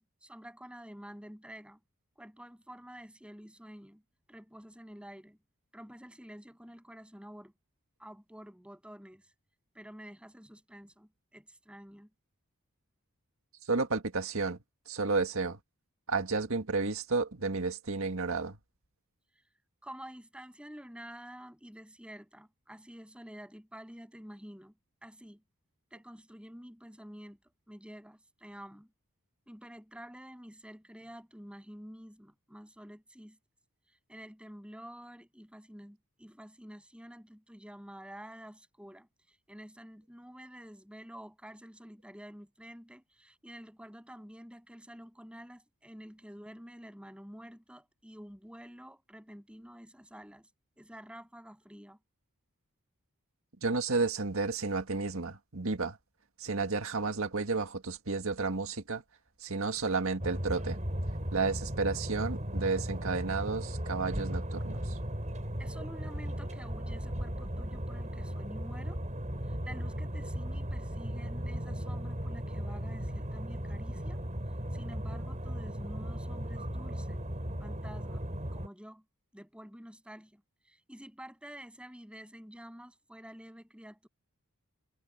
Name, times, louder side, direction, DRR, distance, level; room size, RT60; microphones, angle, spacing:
voice 1, 0.0-1.8 2.2-4.0 4.3-5.4 5.7-7.5 8.0-9.3 9.7-12.1 19.8-24.7 25.0-25.4 25.9-27.4 27.7-28.9 29.5-33.4 34.1-50.5 50.8-52.0 65.6-69.0 69.5-74.2 74.7-77.2 77.6-78.2 78.5-79.0 79.3-80.4 80.7-84.1, equal, 5° right, 7.9 m, -49 dB
voice 2, 13.7-14.6 14.9-15.6 16.1-18.6 53.6-56.0 56.4-59.0 59.4-60.8 61.3-65.0, right 3 dB, 65° right, 1.9 m, -32 dB
sound 1, 60.2-78.7, equal, 35° right, 7.2 m, -36 dB
head